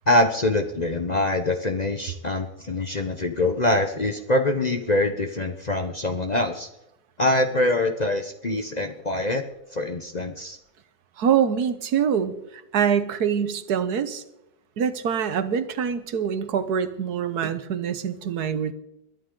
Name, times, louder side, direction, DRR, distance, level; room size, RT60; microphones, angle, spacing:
voice 1, 0.1-6.7 7.2-9.4 9.7-10.6, left 1 dB, 35° left, 6 dB, 0.8 m, -24 dB
voice 2, 11.2-12.3 12.7-14.2 14.8-18.7, right 7 dB, 75° right, 12 dB, 1.5 m, -24 dB
22.0 x 11.0 x 3.8 m, 0.86 s
omnidirectional pair, 1.7 m